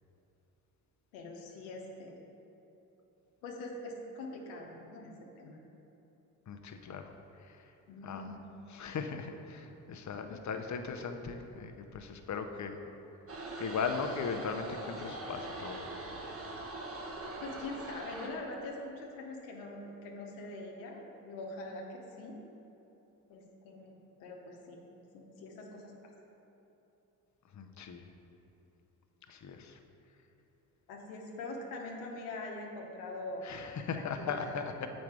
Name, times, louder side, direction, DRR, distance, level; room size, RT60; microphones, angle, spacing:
voice 1, 1.1-2.2 3.4-5.6 7.9-8.3 17.4-22.4 23.3-24.8 25.1-26.1 30.9-33.4 33.9-34.5, left 2 dB, 90° left, 0 dB, 0.9 m, -43 dB
voice 2, 6.5-7.1 8.0-8.3 8.7-12.8 13.6-15.9 27.5-28.0 29.3-29.8 33.4-34.9, left 5 dB, 45° left, 6 dB, 0.8 m, -38 dB
sound 1, 13.3-18.3, right 2 dB, 35° right, 1.3 m, -42 dB
7.2 x 5.2 x 4.7 m, 3.0 s
hypercardioid pair, 55°, 42 cm